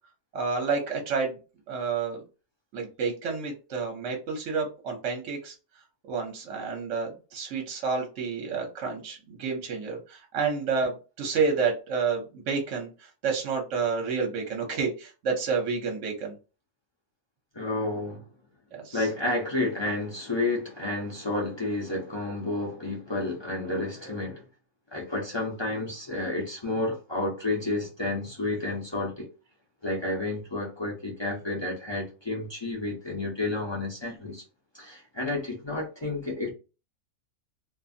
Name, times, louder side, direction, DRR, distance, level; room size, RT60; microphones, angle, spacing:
voice 1, 0.3-1.4 1.7-2.2 2.7-5.5 6.1-16.3 18.7-19.1, right 5 dB, 65° right, 1.0 m, -29 dB
voice 2, 17.5-18.2 18.9-24.4 24.9-29.3 29.8-34.4 34.7-36.5, left 2 dB, 40° left, 0.4 m, -30 dB
2.6 x 2.4 x 2.6 m
omnidirectional pair, 1.5 m